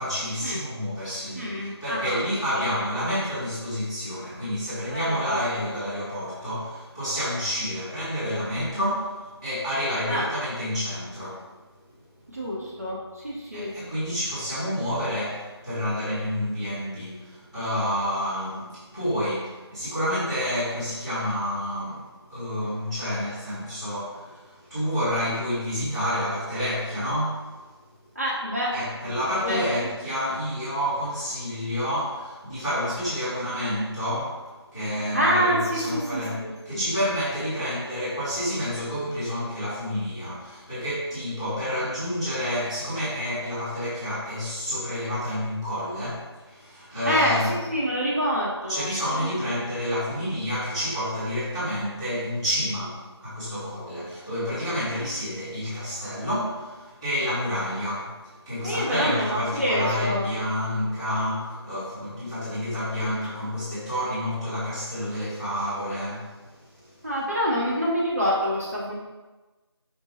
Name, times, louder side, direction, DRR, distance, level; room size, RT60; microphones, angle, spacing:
voice 1, 0.0-11.5 13.5-27.5 28.7-36.4 36.6-47.5 48.7-67.0, equal, ahead, -27 dB, 0.9 m, -29 dB
voice 2, 1.3-2.2 2.5-2.6 4.9-5.6 10.1-10.3 12.3-13.7 28.1-28.7 29.0-29.2 29.4-29.9 35.1-36.8 47.0-49.4 58.6-60.3 67.0-68.9, equal, 35° right, -6 dB, 0.8 m, -27 dB
5.5 x 2.2 x 4.1 m, 1.2 s
figure-of-eight pair, 170°, 14 cm